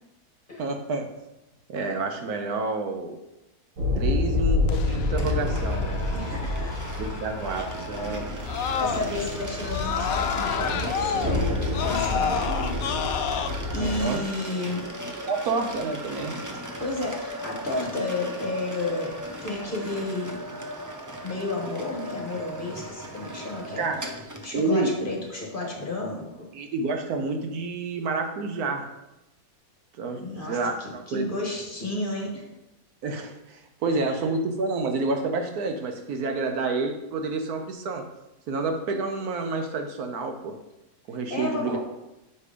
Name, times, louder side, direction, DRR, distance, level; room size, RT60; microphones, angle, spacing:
voice 1, 0.6-1.1 1.7-3.2 3.9-6.0 7.0-8.3 11.9-12.3 13.8-14.2 15.3-16.4 23.8-24.0 24.5-24.9 26.5-28.9 30.0-30.2 30.5-31.3 33.0-38.0 38.5-40.6 41.1-41.8, right 3 dB, 70° right, 5 dB, 1.2 m, -29 dB
sound 1, 3.8-14.0, left 2 dB, 55° right, 1.8 m, -28 dB
Screaming, 4.7-9.3 9.6-13.5, left 8 dB, 70° left, 0.9 m, -31 dB
sound 2, 5.2-24.7, right 1 dB, 25° right, 0.4 m, -38 dB
voice 2, 6.1-7.0 8.2-8.3 8.8-12.9 13.7-14.9 16.8-19.2 19.4-20.4 21.2-23.9 24.4-26.5 30.2-32.4 34.1-34.2 41.3-41.8, left 2 dB, 35° left, -2 dB, 1.7 m, -32 dB
6.8 x 4.9 x 5.1 m, 0.96 s
omnidirectional pair, 1.7 m